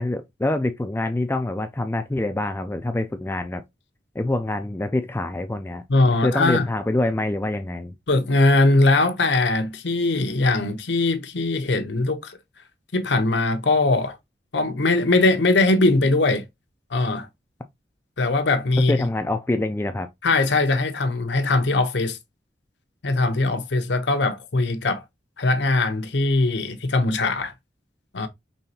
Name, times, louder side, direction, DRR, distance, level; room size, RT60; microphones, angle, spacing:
voice 1, 0.0-3.6 4.2-7.9 18.9-20.1, left 2 dB, 15° left, 0.4 m, -25 dB
voice 2, 5.9-6.7 8.1-12.4 12.9-14.2 14.5-16.4 16.9-17.3 18.2-19.0 20.2-22.2 23.0-25.0 25.4-27.5 28.1-28.3, left 2 dB, 75° left, 0.8 m, -21 dB
5.4 x 3.3 x 2.7 m
head